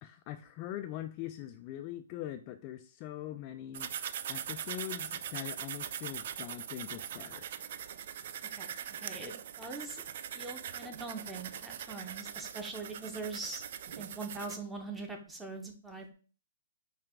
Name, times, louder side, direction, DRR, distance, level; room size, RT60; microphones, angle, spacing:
voice 1, 0.0-7.4, left 12 dB, 35° left, 8 dB, 0.3 m, -42 dB
sound 1, 3.7-14.6, right 9 dB, 55° right, 0.3 m, -41 dB
voice 2, 8.6-10.0 10.3-13.6 14.0-16.1, right 3 dB, 5° right, 3 dB, 0.8 m, -42 dB
4.6 x 2.4 x 3.5 m, 0.39 s
hypercardioid pair, 130°, 0 cm